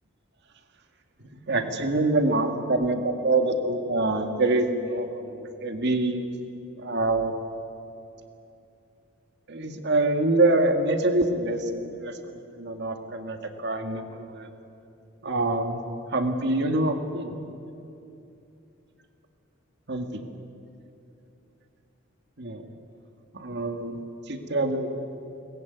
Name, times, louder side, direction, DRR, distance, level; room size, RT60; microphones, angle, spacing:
voice 1, 1.5-6.2 6.8-7.3 9.5-14.5 15.2-15.8 16.1-17.3 19.9-20.2 22.4-22.6 23.3-24.0 24.3-25.0, right 2 dB, 60° right, 6 dB, 2.0 m, -25 dB
23.0 x 19.5 x 9.4 m, 2.8 s
head